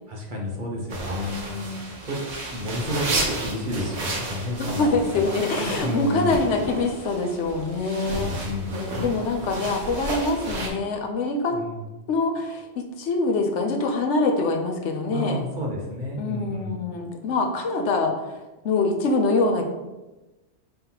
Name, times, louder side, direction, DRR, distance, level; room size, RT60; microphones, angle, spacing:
voice 1, 0.1-1.6 2.0-2.2 2.5-6.4 8.1-8.9 11.5-11.8 15.1-16.8, left 1 dB, 50° right, -1 dB, 0.9 m, -31 dB
sound 1, 0.9-10.7, right 2 dB, 70° right, 1.1 m, -32 dB
voice 2, 1.4-1.8 4.6-8.3 8.7-11.6 12.1-15.4 16.2-18.1 18.6-19.7, left 3 dB, 75° left, 4 dB, 0.9 m, -24 dB
5.5 x 3.3 x 2.8 m, 1.1 s
omnidirectional pair, 1.2 m